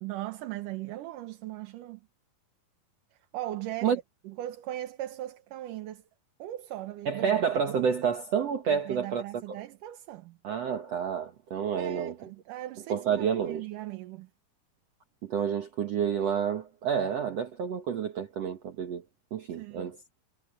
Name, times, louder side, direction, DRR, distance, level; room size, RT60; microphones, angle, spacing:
voice 1, 0.0-2.0 3.1-3.9 4.3-6.0 6.4-7.4 8.7-10.4 11.8-14.3 19.6-19.9, right 14 dB, 70° right, 2.5 m, -39 dB
voice 2, 7.1-9.2 10.4-12.3 12.9-13.7 15.2-19.0 19.3-20.0, right 7 dB, 55° right, 2.2 m, -29 dB
omnidirectional pair, 4.0 m